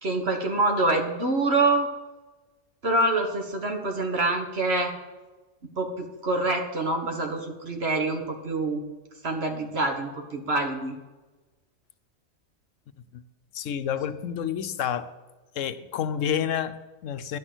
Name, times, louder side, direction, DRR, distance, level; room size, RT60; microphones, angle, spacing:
voice 1, 0.0-1.9 2.8-4.9 5.8-8.8 9.2-11.0, right 2 dB, 50° right, 4 dB, 1.7 m, -26 dB
voice 2, 13.5-15.1 15.5-17.4, left 9 dB, 75° left, 12 dB, 1.0 m, -29 dB
11.0 x 6.0 x 7.9 m, 1.2 s
omnidirectional pair, 1.4 m